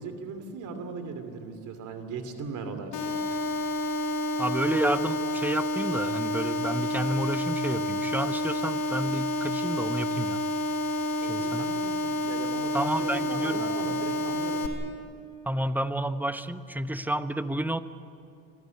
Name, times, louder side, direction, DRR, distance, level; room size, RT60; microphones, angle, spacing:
voice 1, 0.0-3.5 11.2-14.7, right 4 dB, 80° right, 8 dB, 2.8 m, -38 dB
sound 1, 2.9-14.7, left 1 dB, 85° left, 3.8 m, -29 dB
voice 2, 4.4-10.4 11.2-11.6 12.7-14.0 15.5-17.8, right 1 dB, 5° right, 11 dB, 0.9 m, -30 dB
25.5 x 14.5 x 9.7 m, 2.5 s
cardioid pair, 90°, 30 cm